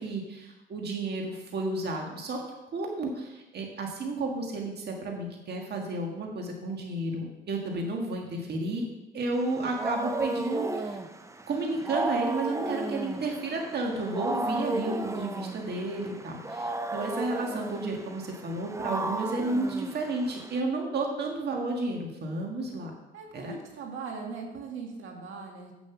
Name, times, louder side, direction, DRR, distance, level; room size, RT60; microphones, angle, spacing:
voice 1, 0.0-2.4 2.7-8.9 9.1-11.0 11.5-22.9 23.3-23.5, right 2 dB, 55° right, 1 dB, 1.7 m, -32 dB
Wild animals, 9.4-20.6, right 2 dB, 15° right, 0.7 m, -34 dB
voice 2, 23.1-25.7, right 5 dB, 80° right, 1 dB, 1.8 m, -40 dB
8.0 x 7.2 x 5.9 m, 1.0 s
cardioid pair, 90°, 20 cm